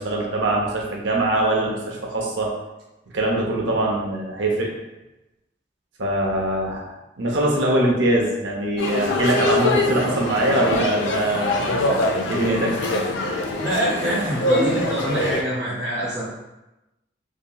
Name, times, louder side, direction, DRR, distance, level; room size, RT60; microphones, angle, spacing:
voice 1, 0.0-2.5 3.1-4.7 6.0-6.9 7.2-11.6 12.3-12.7, right 1 dB, 80° right, -1 dB, 0.6 m, -22 dB
sound 1, 8.8-15.4, left 2 dB, 85° left, 0.4 m, -24 dB
voice 2, 13.6-16.3, equal, 20° right, -9 dB, 0.5 m, -25 dB
2.8 x 2.8 x 2.2 m, 0.98 s
head